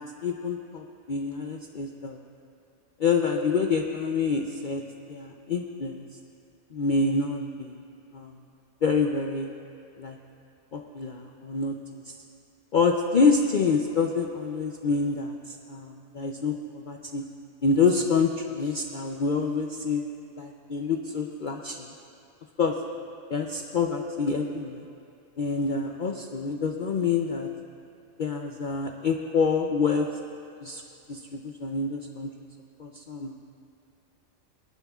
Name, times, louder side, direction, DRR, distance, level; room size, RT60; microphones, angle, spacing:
voice 1, 0.0-2.2 3.0-4.8 5.1-6.1 6.7-7.8 8.1-8.3 8.8-9.5 10.0-10.2 10.7-12.1 12.7-17.2 17.6-20.0 20.4-21.9 22.6-22.7 23.3-24.8 25.4-27.5 28.2-30.1 30.6-30.8 31.1-32.3 32.8-33.4, left 4 dB, 50° left, 2 dB, 0.6 m, -27 dB
24.0 x 11.5 x 2.4 m, 2.7 s
omnidirectional pair, 1.3 m